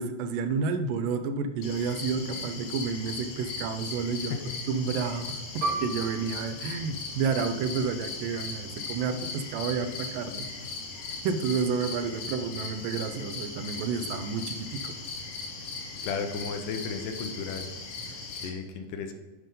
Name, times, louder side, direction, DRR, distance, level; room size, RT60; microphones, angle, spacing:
voice 1, 0.0-4.3 4.7-10.5 11.2-15.0, right 5 dB, 80° right, 10 dB, 2.1 m, -30 dB
sound 1, 1.6-18.5, left 4 dB, 60° left, 1.8 m, -38 dB
Piano, 5.6-10.7 11.0-11.2 11.9-12.3, right 3 dB, 65° right, 2.0 m, -38 dB
voice 2, 16.0-17.7 18.1-19.1, left 5 dB, 80° left, 6 dB, 2.2 m, -34 dB
9.6 x 5.3 x 3.8 m, 1.2 s
omnidirectional pair, 4.0 m